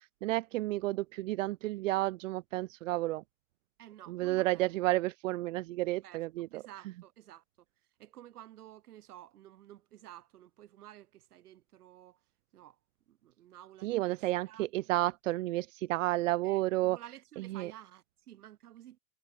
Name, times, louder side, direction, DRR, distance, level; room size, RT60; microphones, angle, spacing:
voice 1, 0.0-3.2 4.1-6.6 13.8-17.0 17.4-17.7, right 17 dB, 60° right, 0.5 m, -31 dB
voice 2, 3.8-4.8 6.0-6.2 6.5-7.4 8.0-12.2 12.5-12.8 13.1-14.2 14.5-14.7 16.4-19.0, right 12 dB, 80° right, 2.3 m, -52 dB
supercardioid pair, 170°, 45 cm